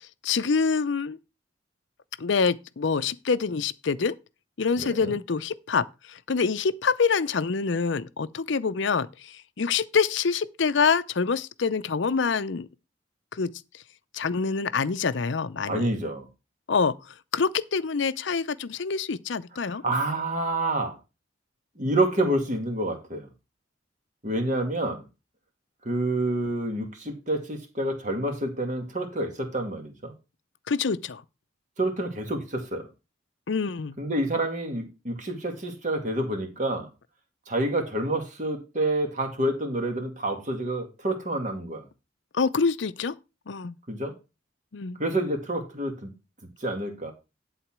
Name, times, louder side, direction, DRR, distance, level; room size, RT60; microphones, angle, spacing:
voice 1, 0.2-1.2 2.2-4.1 4.6-12.7 13.3-13.5 14.1-15.9 16.7-19.8 30.7-31.2 33.5-34.0 42.3-43.1 43.5-43.8 44.7-45.0, left 5 dB, 65° left, 0.6 m, -26 dB
voice 2, 4.8-5.1 15.7-16.3 19.6-20.9 21.8-23.3 24.2-25.0 25.8-30.1 31.8-32.9 34.0-36.9 37.5-41.8 43.9-44.1 45.0-46.1 46.6-47.1, right 1 dB, 40° right, 2.1 m, -28 dB
11.0 x 4.1 x 6.0 m
head